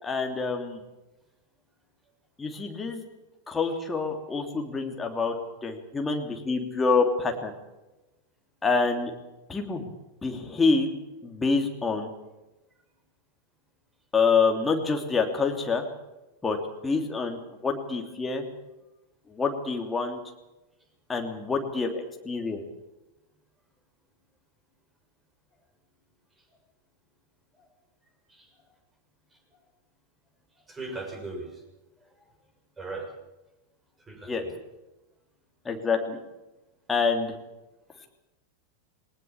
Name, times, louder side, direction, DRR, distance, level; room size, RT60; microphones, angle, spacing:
voice 1, 0.0-0.8 2.4-3.0 3.5-5.3 5.6-7.5 8.6-9.1 9.5-9.9 10.2-10.9 11.2-12.1 14.1-15.8 16.4-16.6 16.8-18.4 19.3-20.2 21.1-22.6 34.2-34.4 35.6-36.2 36.9-37.4 38.0-38.1, left 4 dB, 15° left, 3 dB, 3.1 m, -26 dB
voice 2, 30.7-31.6 32.8-33.1 34.1-34.6, right 3 dB, 15° right, 3 dB, 6.4 m, -38 dB
21.5 x 19.5 x 7.3 m, 1.0 s
figure-of-eight pair, 90°, 0 cm